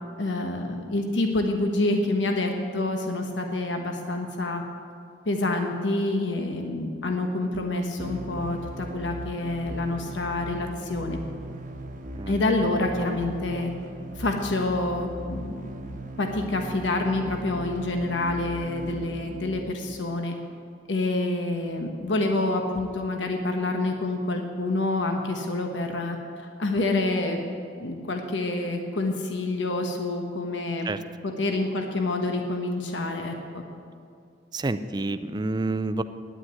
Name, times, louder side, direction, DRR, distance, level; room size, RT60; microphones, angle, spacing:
voice 1, 0.2-4.6 5.3-11.2 12.3-13.7 14.2-15.7 16.2-20.3 20.9-26.2 26.6-27.4 27.8-30.9 31.2-33.6, left 2 dB, 75° left, 3 dB, 1.1 m, -27 dB
sound 1, 8.0-20.0, right 1 dB, 45° right, 1.1 m, -38 dB
voice 2, 34.5-36.0, right 2 dB, 25° right, 12 dB, 0.4 m, -28 dB
9.8 x 8.9 x 9.3 m, 2.4 s
head